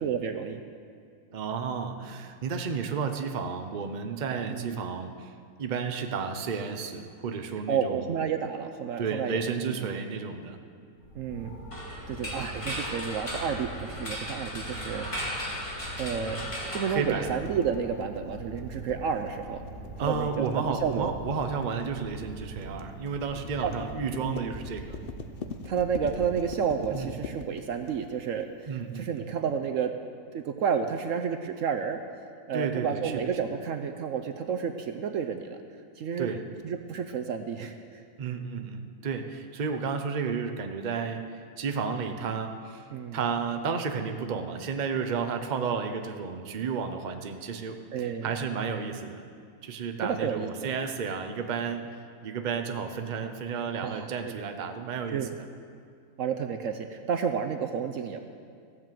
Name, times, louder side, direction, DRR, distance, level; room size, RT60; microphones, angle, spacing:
voice 1, 0.0-0.6 4.5-4.8 7.7-9.4 11.1-11.5 12.1-15.1 16.0-16.4 16.7-19.7 20.0-21.1 23.6-23.7 24.2-24.5 25.6-29.9 30.3-32.0 32.5-35.6 36.0-36.3 36.6-38.0 42.9-43.2 47.9-48.3 50.0-50.7 53.8-54.4 55.1-55.4 56.2-58.2, right 7 dB, 65° right, 6 dB, 0.9 m, -31 dB
voice 2, 1.3-8.1 9.0-10.6 16.9-17.4 20.0-25.0 26.9-27.2 28.7-29.3 32.5-33.3 36.2-36.5 38.2-42.9 43.1-49.2 49.6-55.3, right 5 dB, 40° right, 6 dB, 0.7 m, -32 dB
sound 1, 10.9-26.9, right 2 dB, 65° left, 3.9 m, -43 dB
sound 2, 11.7-17.7, equal, 20° left, 2.1 m, -37 dB
sound 3, 17.4-29.0, left 5 dB, 50° left, 0.7 m, -42 dB
15.0 x 7.8 x 7.5 m, 2.2 s
omnidirectional pair, 1.6 m